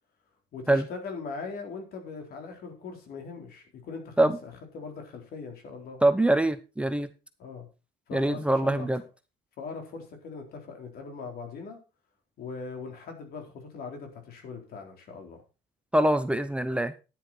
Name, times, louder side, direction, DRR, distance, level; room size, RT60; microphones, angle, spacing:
voice 1, 0.5-6.0 7.4-7.7 8.1-8.9 9.6-11.8 12.4-15.4, left 4 dB, 65° left, 4 dB, 3.9 m, -40 dB
voice 2, 6.0-7.1 8.1-9.0 15.9-16.9, right 1 dB, 5° right, 11 dB, 0.8 m, -24 dB
10.0 x 10.0 x 4.2 m, 0.30 s
cardioid pair, 110°, 17 cm